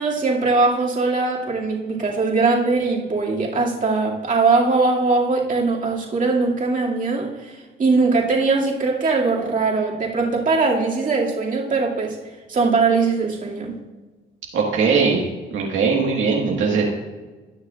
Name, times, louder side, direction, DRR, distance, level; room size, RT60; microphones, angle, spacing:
voice 1, 0.0-12.2 12.5-13.7, right 3 dB, 40° right, -3 dB, 2.4 m, -21 dB
voice 2, 14.5-15.2 15.5-16.8, right 5 dB, 75° right, -2 dB, 1.7 m, -20 dB
18.5 x 6.5 x 2.5 m, 1.3 s
cardioid pair, 90°, 20 cm